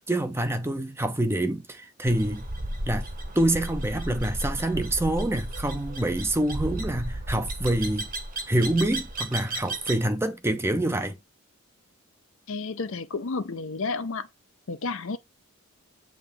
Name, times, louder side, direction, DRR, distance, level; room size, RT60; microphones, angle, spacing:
voice 1, 0.0-2.5 2.9-3.1 3.3-8.1 8.5-11.1, right 1 dB, 10° right, 0.7 m, -26 dB
sound 1, 2.1-10.1, right 1 dB, 40° right, 1.5 m, -34 dB
voice 2, 12.5-14.3 14.7-15.2, left 4 dB, 60° left, 0.7 m, -31 dB
7.9 x 3.6 x 3.6 m
head